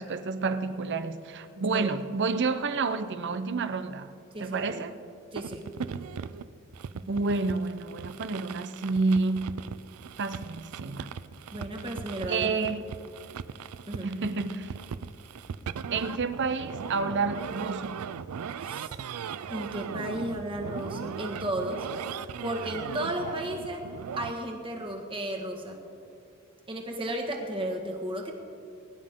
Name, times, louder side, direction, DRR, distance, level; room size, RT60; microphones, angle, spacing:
voice 1, 0.0-4.1 4.4-4.9 6.9-9.5 10.2-11.1 12.3-12.8 14.0-14.7 15.9-17.9, right 4 dB, 55° right, 0.7 m, -29 dB
voice 2, 4.3-4.8 5.3-5.7 11.5-12.7 13.9-14.1 18.6-18.9 19.5-21.9 22.4-23.9 24.2-25.8 26.7-28.3, right 1 dB, 25° right, 1.6 m, -34 dB
sound 1, 5.4-24.3, right 6 dB, 90° right, 0.4 m, -39 dB
22.0 x 11.0 x 3.7 m
head